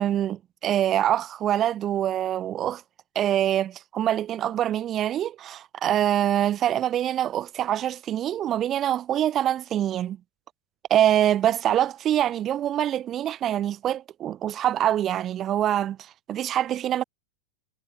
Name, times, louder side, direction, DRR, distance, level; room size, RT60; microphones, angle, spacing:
voice 1, 0.0-2.8 3.1-10.2 10.9-16.0 16.3-17.0, right 11 dB, 30° right, 0.8 m, -24 dB
figure-of-eight pair, 90°, 0 cm